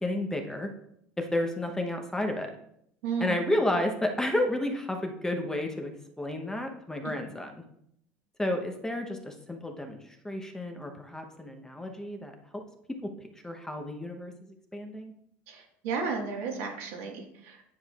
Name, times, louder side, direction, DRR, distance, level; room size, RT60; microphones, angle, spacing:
voice 1, 0.0-0.7 1.2-2.5 3.2-5.9 6.2-7.5 8.4-10.0 10.2-12.6 13.0-13.1 13.4-15.1, left 1 dB, 10° left, 3 dB, 0.9 m, -31 dB
voice 2, 3.0-3.4 7.0-7.1 15.5-17.6, right 5 dB, 85° right, 0 dB, 1.6 m, -33 dB
9.5 x 5.0 x 2.4 m, 0.71 s
supercardioid pair, 110°, 7 cm